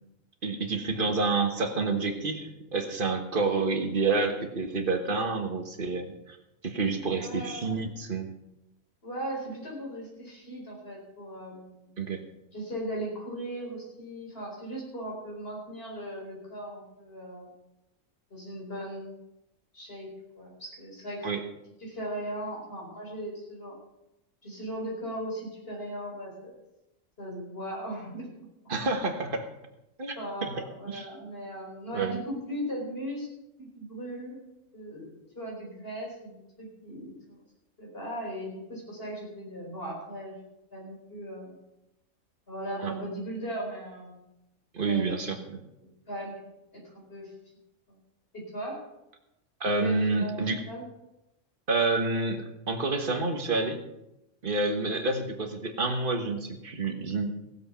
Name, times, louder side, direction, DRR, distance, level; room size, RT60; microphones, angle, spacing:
voice 1, 0.4-6.4 6.6-8.3 12.0-12.2 21.2-21.4 28.7-29.4 30.0-30.6 30.9-31.1 31.9-32.2 42.8-42.9 44.7-45.6 49.6-50.6 51.7-53.8 54.4-57.4, right 3 dB, 40° right, 5 dB, 1.5 m, -28 dB
voice 2, 7.0-7.8 9.0-11.9 12.5-17.5 18.3-19.2 19.7-21.3 21.8-23.8 24.4-26.5 27.2-28.3 30.2-33.3 33.6-34.4 34.7-37.4 37.8-40.4 40.7-41.6 42.5-44.2 44.8-45.3 45.7-46.4 46.7-47.3 47.9-48.0 48.3-48.8 49.8-50.8 54.8-55.0, equal, 45° left, -2 dB, 4.7 m, -38 dB
16.0 x 7.8 x 5.8 m, 0.89 s
omnidirectional pair, 1.4 m